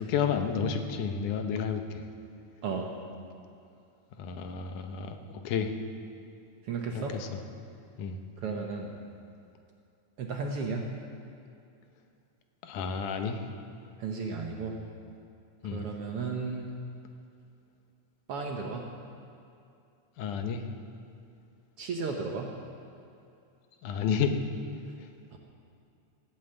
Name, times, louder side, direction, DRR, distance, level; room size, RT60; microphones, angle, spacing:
voice 1, 0.0-2.1 4.2-5.7 6.9-7.4 8.0-8.2 12.6-13.5 15.6-15.9 20.2-20.6 23.8-24.3 25.0-25.1, left 6 dB, 80° left, 6 dB, 2.4 m, -31 dB
voice 2, 6.7-7.1 8.4-8.9 10.2-10.9 14.0-14.7 15.7-16.7 18.3-18.8 21.8-22.5 25.3-25.4, right 4 dB, 60° right, 1 dB, 1.6 m, -34 dB
16.5 x 8.8 x 8.0 m, 2.6 s
omnidirectional pair, 3.6 m